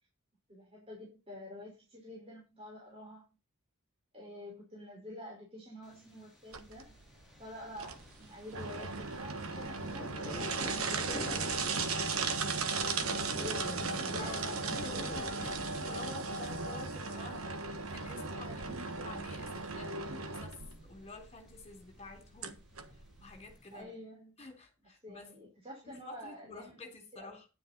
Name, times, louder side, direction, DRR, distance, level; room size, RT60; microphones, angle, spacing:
voice 1, 0.5-3.2 4.1-7.0 7.4-11.7 12.3-15.0 18.5-19.3 20.1-20.2 23.7-24.3 25.0-26.7 27.1-27.3, left 1 dB, 25° right, 5.6 m, -48 dB
Thunder, 5.8-23.8, equal, ahead, 5.9 m, -50 dB
sound 1, 6.5-23.6, right 4 dB, 80° right, 1.5 m, -37 dB
voice 2, 14.2-18.6 19.0-22.6 22.9-23.9 24.4-25.5 25.8-27.5, left 3 dB, 30° left, 3.5 m, -50 dB
10.5 x 9.7 x 4.4 m
head